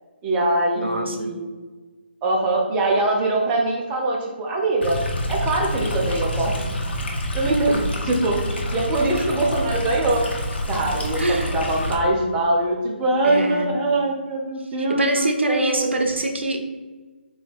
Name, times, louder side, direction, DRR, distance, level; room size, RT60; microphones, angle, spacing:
voice 1, 0.2-1.5 2.2-5.0 5.3-6.7 7.3-8.4 8.7-10.3 10.7-16.0, right 2 dB, 15° right, -1 dB, 0.7 m, -23 dB
voice 2, 0.8-1.3 11.2-11.5 13.2-13.7 15.0-16.6, right 2 dB, 80° right, 4 dB, 0.7 m, -24 dB
Stream, 4.8-11.9, equal, 70° left, 0.8 m, -27 dB
3.8 x 2.7 x 3.5 m, 1.3 s
figure-of-eight pair, 150°, 6 cm